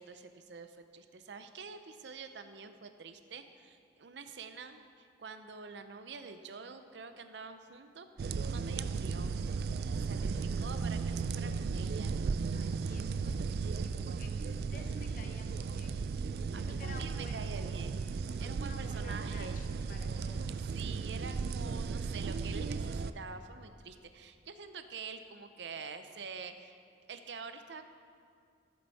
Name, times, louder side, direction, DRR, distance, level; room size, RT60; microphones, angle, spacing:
voice 1, 0.0-9.5 9.9-12.2 16.5-18.0 18.4-19.6 20.7-26.8 27.1-27.8, right 5 dB, 90° right, 9 dB, 0.7 m, -47 dB
sound 1, 8.2-23.1, right 5 dB, 60° right, 0.3 m, -35 dB
voice 2, 12.4-16.0 16.5-17.7 18.3-20.5, left 3 dB, 50° left, 5 dB, 0.8 m, -53 dB
14.0 x 7.9 x 4.1 m, 2.2 s
head